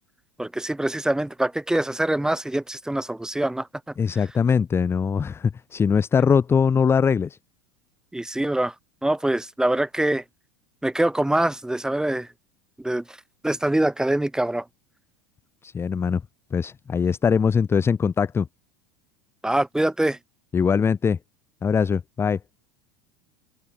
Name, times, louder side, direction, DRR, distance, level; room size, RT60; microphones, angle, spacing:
voice 1, 0.4-3.7 8.1-8.7 9.0-10.2 10.8-12.3 12.8-13.2 13.4-14.6 19.4-20.2, right 1 dB, 5° right, 2.1 m, -24 dB
voice 2, 4.0-7.4 15.6-16.2 16.5-18.5 20.5-21.2 21.6-22.4, left 6 dB, 20° left, 0.5 m, -21 dB
hypercardioid pair, 100°, 13 cm